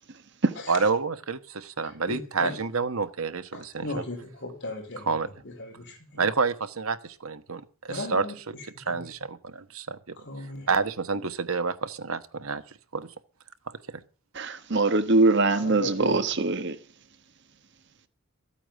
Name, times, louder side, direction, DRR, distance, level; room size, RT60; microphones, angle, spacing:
voice 1, 0.7-3.9 5.1-5.3 6.2-8.2 8.9-10.2 10.7-13.1 13.7-14.0, right 4 dB, 85° right, 1.3 m, -29 dB
voice 2, 1.8-2.6 3.5-6.2 7.9-9.1 10.2-10.7 11.1-11.2 15.6-16.4, left 2 dB, 55° left, 4.4 m, -38 dB
voice 3, 14.3-16.8, right 3 dB, 55° right, 1.3 m, -22 dB
14.5 x 8.8 x 7.7 m
head